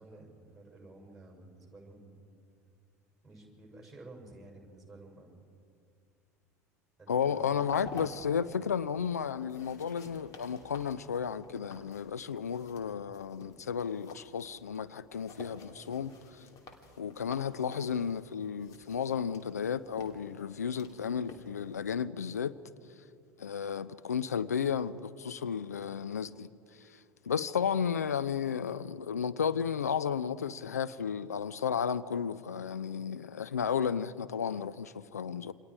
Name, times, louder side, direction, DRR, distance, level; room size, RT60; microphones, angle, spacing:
voice 1, 0.0-2.2 3.2-5.3 7.0-7.6, right 2 dB, ahead, 6.6 m, -52 dB
voice 2, 7.1-16.4 17.0-22.5 23.4-26.5 26.8-27.0 27.3-35.5, left 7 dB, 75° left, 0.6 m, -33 dB
sound 1, 7.2-21.9, left 4 dB, 45° left, 2.8 m, -51 dB
28.0 x 25.0 x 4.9 m
figure-of-eight pair, 75°, 9 cm